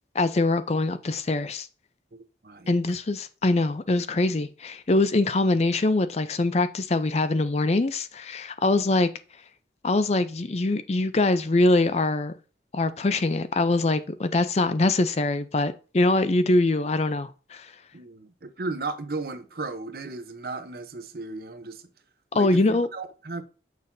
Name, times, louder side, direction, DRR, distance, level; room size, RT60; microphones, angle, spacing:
voice 1, 0.1-1.7 2.7-9.1 9.8-12.3 12.7-17.8 22.3-22.9, left 2 dB, 35° left, 0.5 m, -23 dB
voice 2, 2.1-2.7 17.9-21.8 22.3-23.4, right 3 dB, 55° right, 0.8 m, -35 dB
7.1 x 6.4 x 2.6 m
head